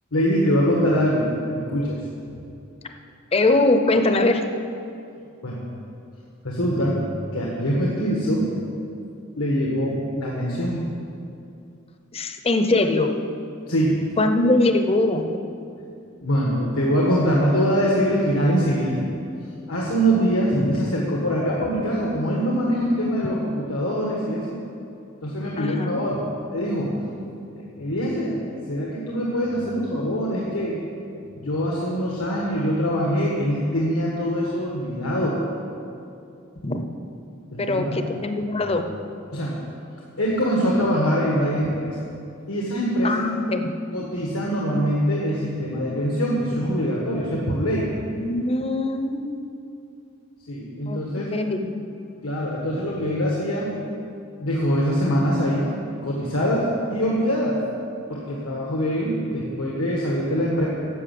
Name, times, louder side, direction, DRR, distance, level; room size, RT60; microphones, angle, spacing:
voice 1, 0.1-1.3 1.5-2.0 5.4-5.6 6.4-7.0 7.3-8.5 9.4-10.8 13.7-14.0 16.2-19.0 19.7-24.6 25.2-26.9 27.5-28.4 28.7-30.8 31.3-35.4 37.5-38.0 39.3-39.6 40.2-41.9 42.5-43.1 43.9-47.9 50.5-51.3 52.2-53.7 54.4-55.7 56.0-57.6 58.1-60.7, equal, 90° left, -3 dB, 1.5 m, -23 dB
voice 2, 3.3-4.4 12.1-13.1 14.2-15.4 20.5-20.8 25.6-26.0 36.6-36.8 37.6-38.9 43.0-43.8 48.2-49.4 50.9-51.7, left 2 dB, 30° left, 7 dB, 0.6 m, -22 dB
11.0 x 6.5 x 7.8 m, 2.6 s
head